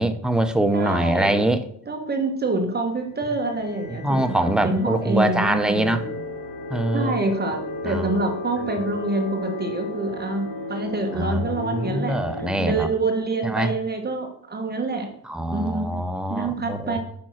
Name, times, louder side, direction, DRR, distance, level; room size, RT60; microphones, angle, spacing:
voice 1, 0.0-1.6 4.0-6.1 6.7-7.1 7.8-8.1 11.2-12.9 13.4-13.7 15.3-17.0, right 1 dB, ahead, 8 dB, 0.6 m, -23 dB
voice 2, 0.7-1.4 1.9-6.2 6.9-15.1 15.5-16.0 16.3-17.0, right 2 dB, 25° right, 4 dB, 1.2 m, -26 dB
sound 1, 2.9-12.5, left 2 dB, 60° left, 2.8 m, -34 dB
8.6 x 5.3 x 6.2 m, 0.68 s
cardioid pair, 140°, 41 cm